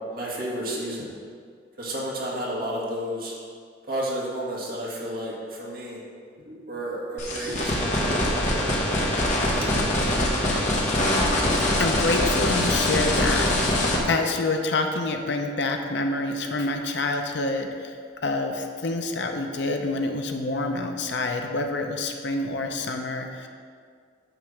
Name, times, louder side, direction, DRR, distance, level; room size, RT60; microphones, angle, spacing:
voice 1, 0.1-1.1 1.8-3.3 3.9-6.0 6.4-9.0 9.6-9.7, right 1 dB, 45° right, -5 dB, 1.7 m, -32 dB
sound 1, 7.2-14.0, left 1 dB, 35° left, 1.2 m, -23 dB
voice 2, 11.8-18.0 18.2-23.5, left 2 dB, 60° left, 4 dB, 0.6 m, -27 dB
9.0 x 3.3 x 6.4 m, 2.1 s
head